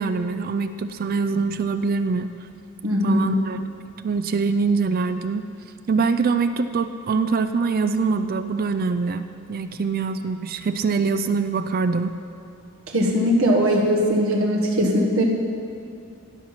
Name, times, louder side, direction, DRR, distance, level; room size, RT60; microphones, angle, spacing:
voice 1, 0.0-2.3 3.0-3.6 4.0-5.5 5.9-12.2, right 4 dB, 40° right, 10 dB, 0.4 m, -24 dB
voice 2, 2.8-3.3 12.9-15.2, equal, 65° right, -1 dB, 1.4 m, -20 dB
17.0 x 5.9 x 5.6 m, 2.6 s
head